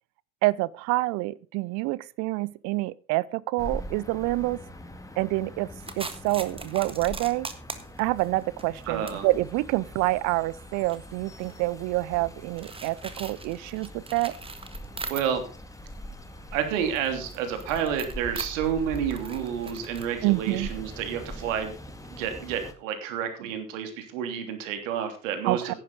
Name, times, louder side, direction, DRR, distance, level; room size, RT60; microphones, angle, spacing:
voice 1, 0.4-4.6 5.2-5.7 6.0-7.5 8.0-14.3 20.2-20.7 25.4-25.7, right 20 dB, 40° right, 0.6 m, -27 dB
sound 1, 3.6-22.7, equal, 5° left, 2.0 m, -43 dB
sound 2, 5.8-15.6 15.9-21.3, right 4 dB, 10° right, 1.6 m, -42 dB
voice 2, 8.9-9.3 15.1-15.4 16.5-21.7 22.1-25.8, right 8 dB, 60° right, 3.2 m, -30 dB
15.0 x 11.5 x 4.0 m
figure-of-eight pair, 75°, 44 cm